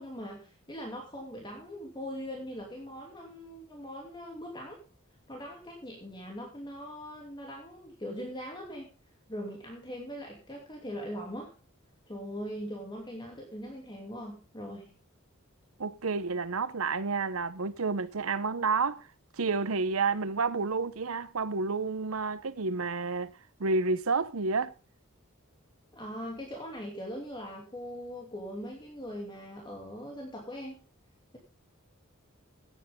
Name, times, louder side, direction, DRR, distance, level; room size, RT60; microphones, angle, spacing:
voice 1, 0.0-4.8 5.3-8.9 9.3-11.6 12.1-15.0 25.9-30.8, equal, 20° left, 2.6 m, -41 dB
voice 2, 15.8-19.1 19.4-23.3 23.6-24.7, right 4 dB, 85° right, 0.8 m, -30 dB
16.5 x 9.3 x 3.6 m
head